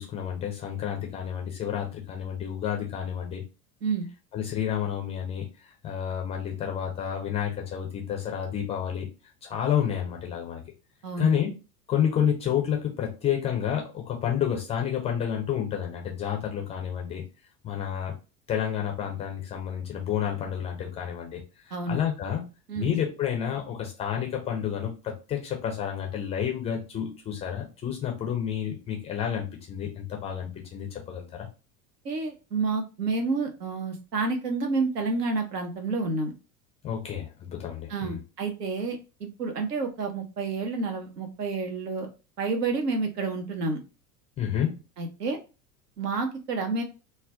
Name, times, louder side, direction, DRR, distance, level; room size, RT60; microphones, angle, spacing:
voice 1, 0.0-3.4 4.3-9.1 9.4-10.6 11.2-11.5 11.9-17.2 17.6-18.1 18.5-22.4 22.7-31.5 36.8-38.2 44.4-44.8, left 9 dB, 15° left, 1 dB, 0.4 m, -30 dB
voice 2, 11.0-11.3 21.7-22.0 22.7-22.9 32.0-36.3 37.9-42.1 42.4-43.8 45.0-45.4 46.0-46.8, right 3 dB, 75° right, 4 dB, 0.8 m, -29 dB
2.4 x 2.1 x 3.5 m, 0.30 s
figure-of-eight pair, 80°, 48 cm